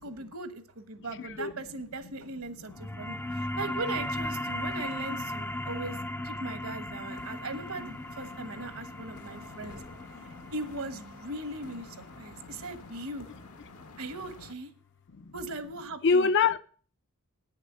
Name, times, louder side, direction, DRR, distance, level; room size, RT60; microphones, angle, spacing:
voice 1, 0.0-6.0 6.2-9.8 10.5-13.3 14.0-14.7 15.3-16.3, right 2 dB, 70° right, 1.2 m, -39 dB
voice 2, 1.0-1.5 2.6-3.4 5.1-5.4 6.0-6.1 7.2-7.5 8.2-10.5 12.2-13.1 13.7-14.0 15.1-15.3 16.0-16.6, left 5 dB, 55° left, 0.5 m, -32 dB
sound 1, 2.7-13.8, left 1 dB, 10° left, 0.4 m, -37 dB
sound 2, 7.1-14.5, left 3 dB, 85° left, 1.5 m, -51 dB
9.2 x 6.6 x 7.5 m
head